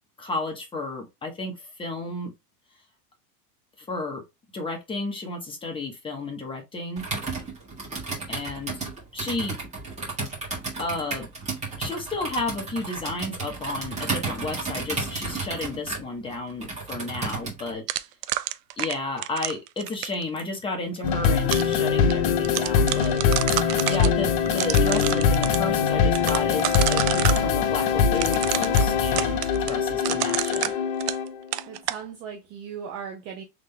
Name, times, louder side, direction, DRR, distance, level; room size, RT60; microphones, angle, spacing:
voice 1, 0.2-2.3 3.8-4.2 4.5-7.1 8.3-8.8 9.1-9.6 10.8-11.3 11.8-17.8 18.8-23.2 23.9-30.7, left 2 dB, 10° left, 1.1 m, -32 dB
Computer keyboard, 7.0-17.7, right 3 dB, 15° right, 1.7 m, -33 dB
sound 1, 17.9-20.2 21.0-21.7 22.1-22.2 22.4-24.1 24.5-25.6 26.2-27.4 28.1-31.3 31.5-32.0, right 15 dB, 80° right, 0.6 m, -29 dB
sound 2, 21.0-31.4, left 6 dB, 55° left, 0.9 m, -22 dB
voice 2, 31.6-33.4, right 7 dB, 30° right, 0.5 m, -37 dB
3.8 x 3.3 x 3.3 m
supercardioid pair, 145°, 47 cm